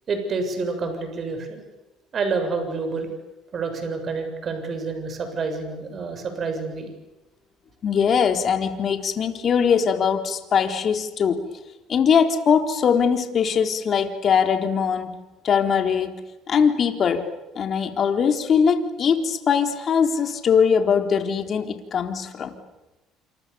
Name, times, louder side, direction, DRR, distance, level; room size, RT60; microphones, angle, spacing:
voice 1, 0.1-1.6 2.1-3.1 3.5-6.9 16.5-16.6, right 4 dB, 40° right, 6 dB, 7.5 m, -28 dB
voice 2, 7.8-11.4 11.9-16.2 16.5-22.5, left 6 dB, 40° left, 6 dB, 3.9 m, -21 dB
28.5 x 28.0 x 7.1 m, 1.0 s
cardioid pair, 115°, 0 cm